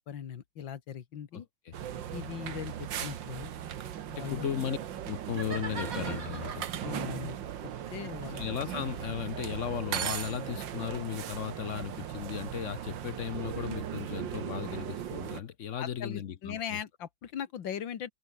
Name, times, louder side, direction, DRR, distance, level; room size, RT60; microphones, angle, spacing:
voice 1, 0.1-1.5 2.1-3.5 4.1-4.5 6.8-7.4 7.9-8.5 15.7-18.1, left 8 dB, 75° left, 2.2 m, -39 dB
voice 2, 1.3-1.7 4.1-4.8 5.1-6.6 8.2-16.8, left 9 dB, 55° left, 0.9 m, -36 dB
sound 1, 1.7-15.4, right 10 dB, 75° right, 1.9 m, -38 dB
sound 2, 5.3-7.0 7.9-10.9, right 4 dB, 45° right, 3.4 m, -44 dB
omnidirectional pair, 2.1 m